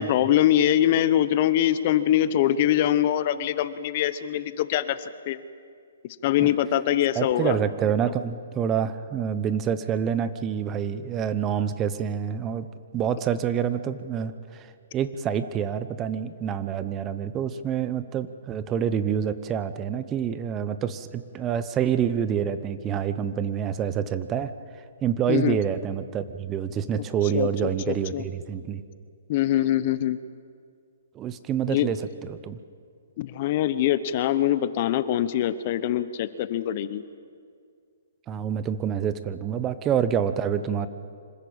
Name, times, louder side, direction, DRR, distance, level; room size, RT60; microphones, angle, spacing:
voice 1, 0.0-5.0 5.3-5.4 6.2-7.6 25.3-25.6 27.3-27.5 27.9-28.2 29.3-30.2 31.7-31.9 33.2-37.0, left 11 dB, 40° left, 14 dB, 0.9 m, -23 dB
voice 2, 7.1-12.7 12.9-24.5 25.0-28.8 31.1-32.6 38.3-40.9, right 8 dB, 20° right, 12 dB, 0.9 m, -27 dB
25.5 x 14.0 x 8.8 m, 2.2 s
hypercardioid pair, 145°, 0 cm